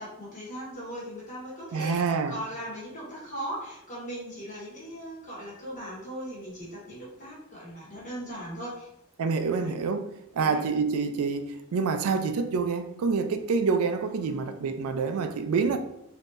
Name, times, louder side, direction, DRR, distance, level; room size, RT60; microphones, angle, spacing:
voice 1, 0.0-8.9 9.5-9.7 10.4-10.6 14.0-14.7, equal, 35° left, 1.3 m, -39 dB
voice 2, 1.7-2.4 9.2-10.1 10.3-15.8, right 5 dB, 85° right, 0.4 m, -27 dB
3.6 x 2.7 x 2.5 m
head